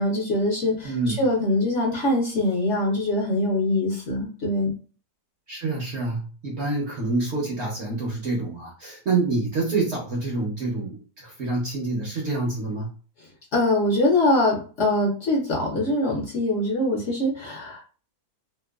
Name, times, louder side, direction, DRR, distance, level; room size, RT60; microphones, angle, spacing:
voice 1, 0.0-0.9 1.2-4.7 13.5-17.8, left 1 dB, 55° left, -2 dB, 0.9 m, -23 dB
voice 2, 0.8-1.2 5.5-12.9, right 3 dB, 55° right, -3 dB, 0.8 m, -27 dB
2.9 x 2.2 x 2.3 m, 0.38 s
omnidirectional pair, 1.7 m